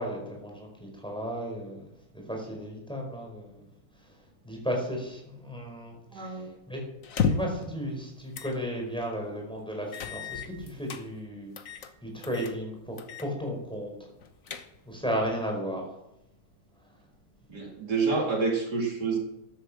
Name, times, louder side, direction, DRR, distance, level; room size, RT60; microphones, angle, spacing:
voice 1, 0.0-1.9 2.1-3.6 4.4-6.8 7.2-11.5 12.0-13.9 14.9-15.8, equal, 5° left, 0 dB, 4.9 m, -34 dB
voice 2, 6.1-6.5 17.5-19.2, right 4 dB, 60° right, 1 dB, 2.8 m, -28 dB
sound 1, 7.0-7.6 8.3-8.6 9.0-9.1 9.9-11.0 11.6-11.9 12.2-12.6 13.0-13.3 13.6-13.7 14.2-15.0, left 6 dB, 50° left, 1.3 m, -32 dB
13.5 x 11.5 x 7.5 m, 0.84 s
omnidirectional pair, 2.0 m